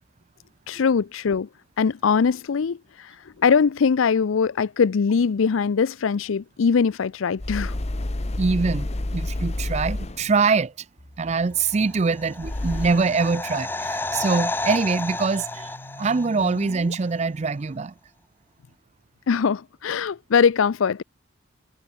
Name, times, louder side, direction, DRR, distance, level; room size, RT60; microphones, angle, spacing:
voice 1, 0.7-1.5 1.8-7.7 19.3-21.0, left 6 dB, 80° left, 0.5 m, -22 dB
sound 1, 7.4-10.4 12.4-13.2, left 1 dB, 30° left, 0.9 m, -29 dB
voice 2, 8.4-10.7 11.2-15.7 16.0-17.9, right 4 dB, 35° right, 0.4 m, -23 dB
sound 2, 11.0-17.0, left 1 dB, 50° left, 2.4 m, -46 dB
sound 3, 11.9-16.8 17.0-17.1, left 2 dB, 10° left, 1.3 m, -31 dB
head